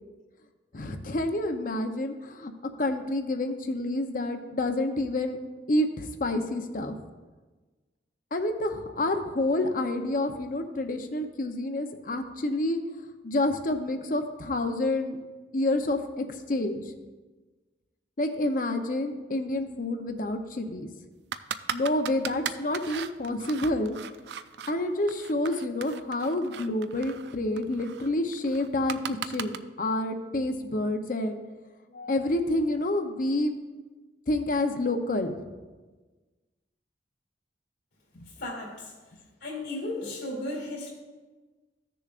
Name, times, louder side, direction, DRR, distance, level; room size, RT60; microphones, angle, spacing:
voice 1, 0.7-2.5 2.8-5.4 5.7-7.0 8.3-12.8 13.2-15.2 15.5-16.8 18.2-20.9 21.7-24.0 24.7-31.4 31.9-33.5 34.3-35.4 38.1-38.3, left 1 dB, 50° left, 6 dB, 0.7 m, -28 dB
sound 1, 21.3-24.7 25.1-29.6, right 8 dB, 65° right, 0.4 m, -37 dB
voice 2, 38.4-38.9 39.4-40.9, left 2 dB, 80° left, -4 dB, 2.3 m, -35 dB
15.0 x 6.8 x 2.5 m, 1.3 s
head